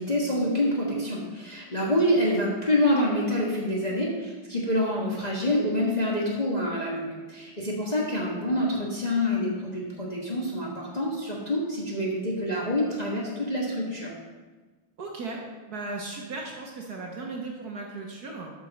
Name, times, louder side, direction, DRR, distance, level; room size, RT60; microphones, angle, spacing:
voice 1, 0.0-14.1, left 1 dB, 25° left, -4 dB, 1.2 m, -27 dB
voice 2, 15.0-15.4 15.7-18.5, right 3 dB, 55° right, 0 dB, 1.3 m, -36 dB
8.9 x 5.1 x 6.3 m, 1.3 s
omnidirectional pair, 2.3 m